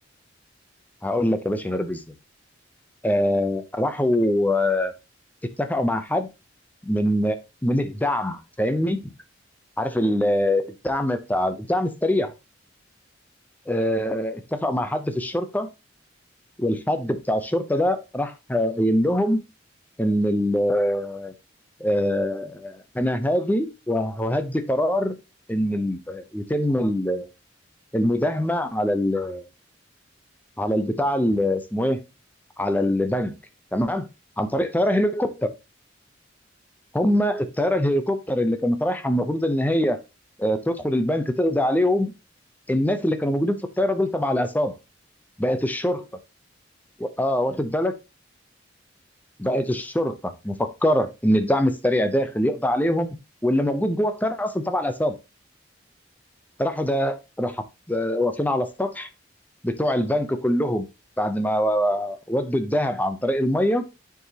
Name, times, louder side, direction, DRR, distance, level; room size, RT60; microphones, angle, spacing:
voice 1, 1.0-2.0 3.0-4.9 5.6-6.3 6.8-7.4 7.6-9.1 9.8-12.3 13.7-15.7 16.6-19.4 20.0-21.3 21.8-25.2 25.5-27.3 27.9-29.5 30.6-32.0 32.6-33.3 33.7-34.1 34.4-35.5 36.9-40.0 40.4-42.1 42.7-44.8 45.4-46.0 47.0-48.0 49.4-53.1 53.4-55.1 56.6-59.1 59.6-60.9 61.2-63.9, left 1 dB, 10° left, 0.6 m, -23 dB
9.6 x 4.7 x 2.9 m
head